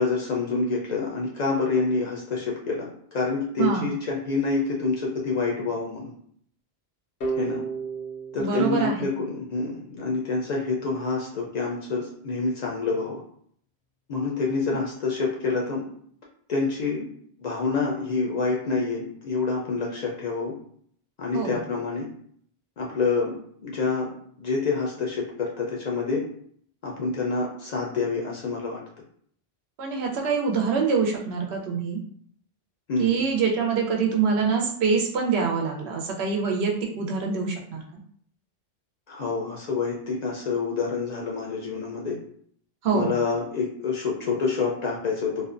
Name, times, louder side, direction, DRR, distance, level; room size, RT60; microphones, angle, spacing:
voice 1, 0.0-6.1 7.4-7.6 8.3-13.2 14.1-15.8 16.5-17.1 17.4-20.5 21.2-22.1 22.8-23.3 23.6-24.1 24.4-26.2 26.8-28.8 32.9-33.2 39.1-42.1 42.9-45.5, left 4 dB, 55° left, -2 dB, 0.5 m, -27 dB
voice 2, 3.6-3.9 8.4-9.1 21.3-21.6 29.8-32.0 33.0-37.8 42.8-43.2, right 5 dB, 85° right, 1 dB, 0.9 m, -25 dB
sound 1, 7.2-10.0, right 4 dB, 85° left, 0.9 m, -34 dB
2.5 x 2.1 x 2.4 m, 0.62 s
omnidirectional pair, 1.1 m